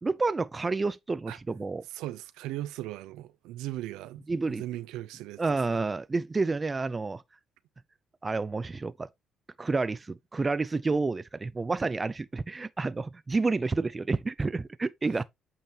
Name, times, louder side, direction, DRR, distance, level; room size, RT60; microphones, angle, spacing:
voice 1, 0.0-1.8 4.3-4.6 5.4-7.2 8.2-9.1 9.6-15.2, right 3 dB, 25° right, 0.5 m, -29 dB
voice 2, 1.9-5.8, right 15 dB, 85° right, 0.7 m, -38 dB
8.7 x 5.3 x 2.9 m
supercardioid pair, 75°, 0 cm